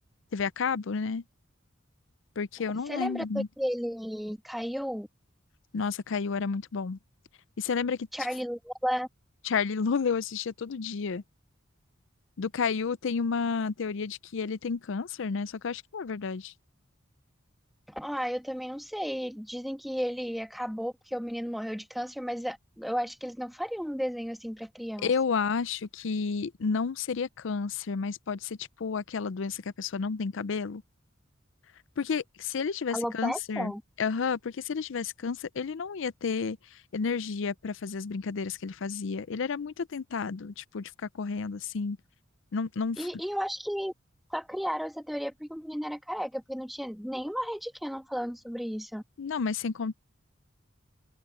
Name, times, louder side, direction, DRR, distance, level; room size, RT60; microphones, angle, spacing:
voice 1, 0.3-1.2 2.4-3.5 5.7-7.0 7.6-8.1 9.4-11.2 12.4-16.5 25.0-30.8 32.0-33.7 34.0-36.6 36.9-42.0 42.5-43.1 49.2-49.9, left 5 dB, 70° left, 0.5 m, -31 dB
voice 2, 2.9-5.1 8.1-9.1 17.9-25.1 32.9-33.8 43.0-43.9 44.3-49.0, equal, ahead, 1.5 m, -33 dB
open air
head